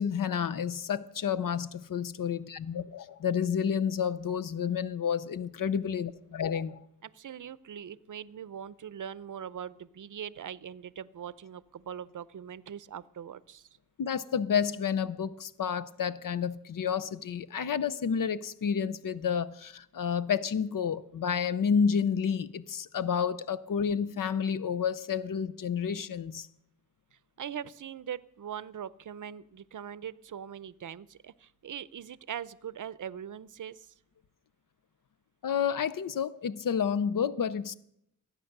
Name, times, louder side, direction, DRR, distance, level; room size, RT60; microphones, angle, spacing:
voice 1, 0.0-6.8 14.0-26.5 35.4-37.7, left 7 dB, 75° left, 0.6 m, -30 dB
voice 2, 7.0-13.7 27.4-33.9, right 9 dB, 65° right, 0.6 m, -41 dB
17.0 x 9.1 x 6.6 m
wide cardioid pair, 80°, 33 cm